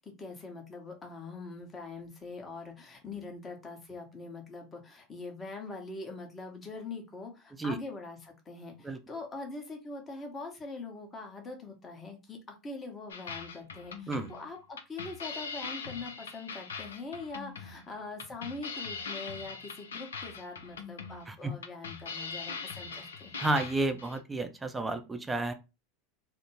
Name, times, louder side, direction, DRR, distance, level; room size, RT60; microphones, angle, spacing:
voice 1, 0.0-12.4 12.6-23.3, left 3 dB, 25° left, 2 dB, 0.9 m, -43 dB
sound 1, 13.1-24.2, left 5 dB, 80° left, 0.4 m, -41 dB
voice 2, 23.4-25.5, right 2 dB, 15° right, 7 dB, 0.5 m, -31 dB
2.6 x 2.1 x 3.0 m, 0.27 s
hypercardioid pair, 85°, 0 cm